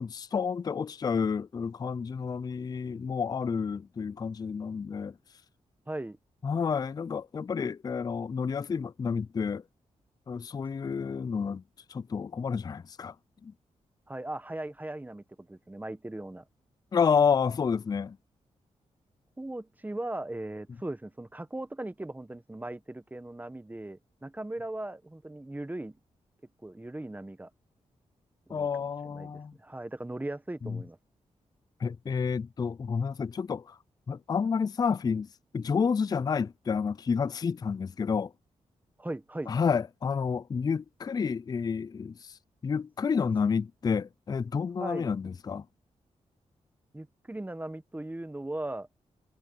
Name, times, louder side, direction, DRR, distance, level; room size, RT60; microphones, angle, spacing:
voice 1, 0.0-5.1 6.4-9.6 10.3-11.6 11.9-13.1 13.4-13.5 16.9-18.2 28.5-29.5 30.6-30.8 31.8-33.8 34.1-35.3 35.5-38.3 39.5-42.4 42.6-45.6, left 6 dB, 30° left, 0.3 m, -30 dB
voice 2, 5.9-6.2 14.1-16.4 19.4-26.0 26.6-27.5 28.5-29.3 29.6-31.0 39.0-39.5 44.8-45.1 46.9-48.9, right 1 dB, 15° right, 1.5 m, -38 dB
cardioid pair, 70°, 12 cm